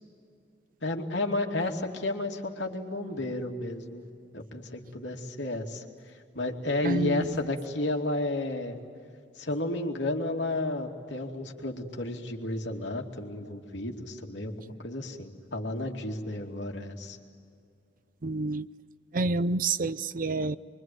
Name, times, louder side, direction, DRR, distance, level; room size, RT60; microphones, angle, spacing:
voice 1, 0.8-4.0 4.3-5.8 6.3-8.8 9.4-17.2, left 2 dB, 85° left, 2.7 m, -32 dB
voice 2, 6.8-7.3 18.2-18.7 19.1-20.6, right 3 dB, 50° right, 0.6 m, -28 dB
26.5 x 24.0 x 9.4 m
head